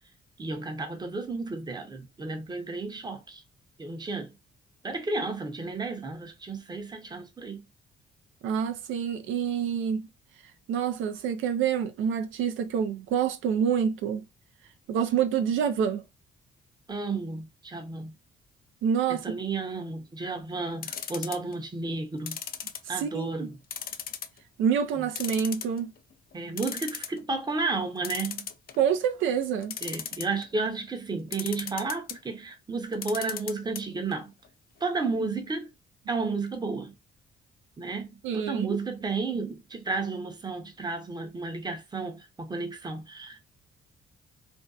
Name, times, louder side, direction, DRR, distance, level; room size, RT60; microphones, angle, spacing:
voice 1, 0.4-3.4 3.8-4.3 4.8-7.6 16.9-18.1 19.1-22.4 22.9-23.6 26.3-28.5 29.8-34.3 34.8-35.7 36.1-36.9 37.8-43.4, right 3 dB, 20° right, 0.7 m, -32 dB
voice 2, 8.4-10.1 10.7-14.2 14.9-16.0 18.8-19.4 22.8-23.5 24.6-25.9 28.8-29.7 38.2-38.8, right 8 dB, 85° right, 0.4 m, -27 dB
sound 1, 20.8-21.6 22.3-23.2 23.7-24.4 24.7-24.8 25.1-26.0 26.3-26.4 26.6-27.2 28.0-28.9 29.6-30.4 31.3-32.2 32.9-33.8 34.1-34.2 34.4-34.5, left 8 dB, 50° left, 0.4 m, -36 dB
2.6 x 2.2 x 2.3 m
cardioid pair, 90°, 20 cm